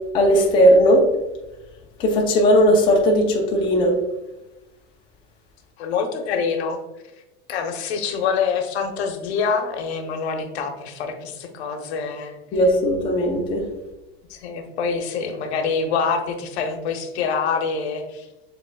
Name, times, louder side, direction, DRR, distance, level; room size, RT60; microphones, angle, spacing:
voice 1, 0.1-1.1 2.0-3.9 12.5-13.6, equal, 15° left, -1 dB, 0.5 m, -17 dB
voice 2, 5.8-6.8 7.5-12.4 14.3-18.3, left 5 dB, 85° left, 5 dB, 0.9 m, -25 dB
7.1 x 3.3 x 2.2 m, 1.0 s
supercardioid pair, 170°, 32 cm